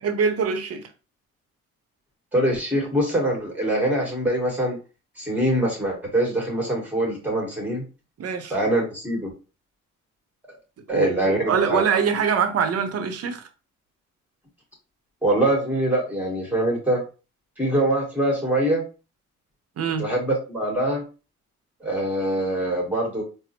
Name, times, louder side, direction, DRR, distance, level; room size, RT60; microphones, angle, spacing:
voice 1, 0.0-0.8 8.2-8.5 10.9-13.4 19.8-20.0, right 6 dB, 55° right, 0.7 m, -24 dB
voice 2, 2.3-4.8 5.2-7.8 8.5-9.3 10.9-11.8 15.2-17.0 17.6-18.8 20.0-21.0 21.8-23.2, right 1 dB, 5° right, 1.4 m, -23 dB
4.1 x 2.0 x 2.8 m
cardioid pair, 90°, 30 cm